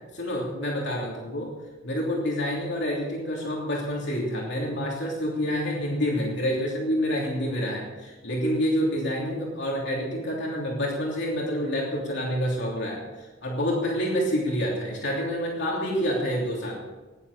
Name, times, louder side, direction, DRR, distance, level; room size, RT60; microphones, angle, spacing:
voice 1, 0.1-1.5 1.8-13.0 13.4-16.8, equal, 60° left, -3 dB, 3.1 m, -28 dB
18.0 x 10.5 x 6.7 m, 1.2 s
head